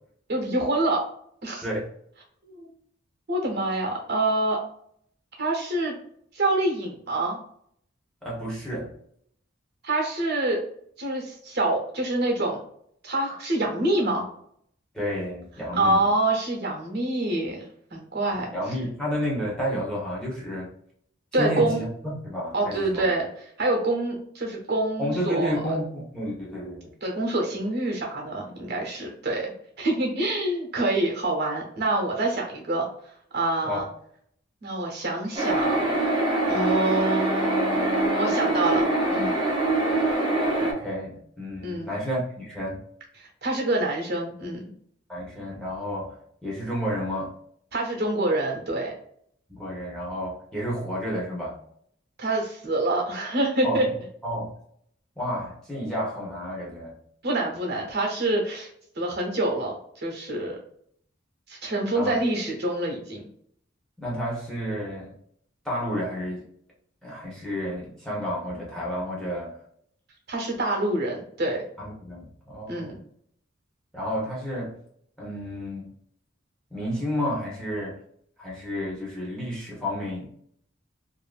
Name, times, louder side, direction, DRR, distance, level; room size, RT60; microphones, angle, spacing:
voice 1, 0.3-1.0 1.4-1.6 2.4-2.7 3.3-4.6 5.4-5.9 6.3-7.4 9.8-10.6 11.0-12.6 13.0-14.3 15.7-17.6 17.9-18.5 21.3-21.8 22.5-23.3 23.6-25.6 27.0-29.5 29.8-32.9 33.3-33.9 34.6-35.9 36.5-39.3 41.6-42.0 43.2-44.7 47.7-48.9 52.2-53.9 57.2-58.7 59.0-60.6 61.5-63.2 70.3-71.6 72.7-73.0, right 2 dB, 55° right, 0 dB, 0.9 m, -26 dB
voice 2, 8.2-8.9 14.9-16.0 18.5-20.7 21.4-23.1 25.0-26.9 33.6-33.9 40.6-42.8 45.1-47.3 49.5-51.6 53.6-53.9 54.2-54.5 55.2-56.9 61.9-62.2 64.0-65.1 65.6-66.5 67.0-69.6 71.8-72.9 73.9-74.7 75.2-75.9 76.7-78.0 78.4-80.3, equal, 5° left, -5 dB, 0.9 m, -31 dB
sound 1, 35.4-40.7, right 2 dB, 25° right, 0.9 m, -24 dB
2.6 x 2.5 x 2.4 m, 0.67 s
head